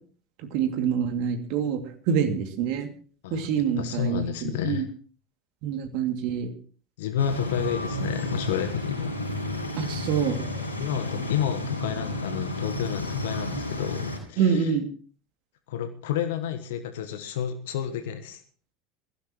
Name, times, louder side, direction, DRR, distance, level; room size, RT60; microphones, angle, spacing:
voice 1, 0.5-1.8 2.1-2.9 3.3-4.9 5.6-6.5 9.8-10.4 14.4-14.9, right 7 dB, 55° right, 6 dB, 2.6 m, -26 dB
voice 2, 3.2-4.9 7.0-9.1 10.8-14.7 15.7-18.4, left 9 dB, 65° left, 8 dB, 1.3 m, -30 dB
sound 1, 7.2-14.2, left 1 dB, 90° left, 5.7 m, -32 dB
22.0 x 15.5 x 3.1 m, 0.43 s
figure-of-eight pair, 70°, 0 cm